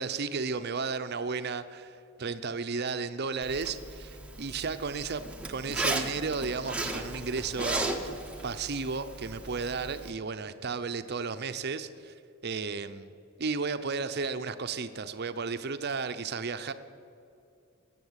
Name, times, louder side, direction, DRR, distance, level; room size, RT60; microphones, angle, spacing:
voice 1, 0.0-8.1 8.4-12.1 12.4-13.1 13.4-16.7, right 4 dB, 50° right, 11 dB, 0.7 m, -33 dB
Zipper (clothing), 3.4-10.1, right 2 dB, 5° right, 1.0 m, -36 dB
18.5 x 7.8 x 8.1 m, 2.5 s
head